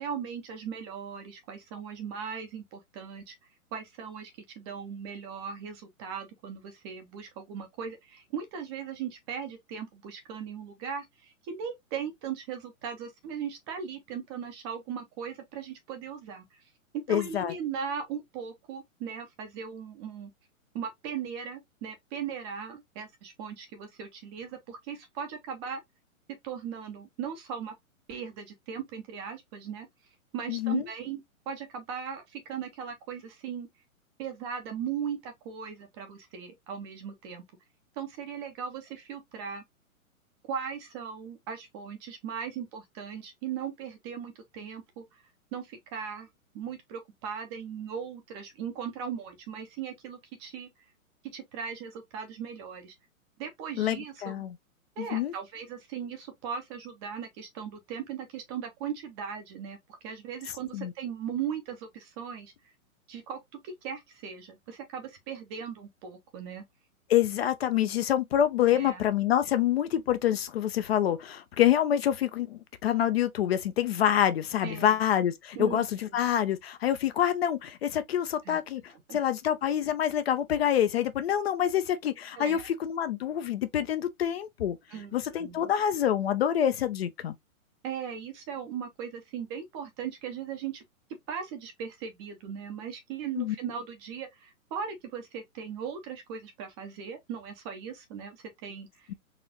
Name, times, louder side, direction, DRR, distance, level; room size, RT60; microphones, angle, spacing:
voice 1, 0.0-3.3 3.7-4.3 4.6-16.6 17.1-20.3 20.7-25.8 26.4-27.7 28.1-29.9 30.3-33.7 34.2-37.4 38.0-39.6 40.5-45.0 45.5-46.3 46.5-50.7 51.3-52.9 53.4-54.4 55.0-59.8 60.0-62.5 63.1-66.6 68.7-69.0 74.6-74.9 75.6-75.8 76.1-76.2 78.4-78.6 79.1-79.2 82.4-82.7 84.9-85.7 87.8-90.8 91.3-99.1, right 7 dB, 20° right, 0.5 m, -38 dB
voice 2, 17.1-17.5 30.5-30.8 53.8-54.5 55.0-55.3 60.7-60.9 67.1-84.8 85.1-87.3 93.4-93.6, left 10 dB, 45° left, 0.5 m, -27 dB
4.1 x 2.4 x 2.7 m
hypercardioid pair, 125°, 42 cm